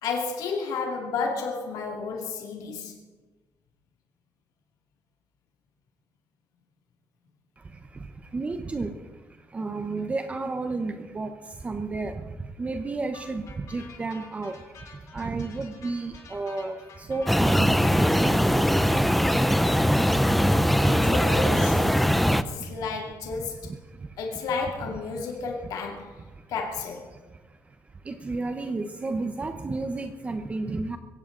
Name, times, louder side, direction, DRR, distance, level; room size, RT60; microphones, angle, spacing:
voice 1, 0.0-3.0 20.8-23.7 24.2-27.1, left 4 dB, 85° left, 2.5 m, -32 dB
voice 2, 7.6-20.6 21.9-22.8 23.4-24.2 25.1-25.2 26.3-26.5 27.1-31.0, right 3 dB, 20° right, 0.9 m, -33 dB
sound 1, 13.1-21.7, left 5 dB, 60° left, 3.2 m, -48 dB
sound 2, 17.3-22.4, equal, ahead, 0.6 m, -21 dB
22.0 x 16.5 x 3.9 m
cardioid pair, 155°, 6 cm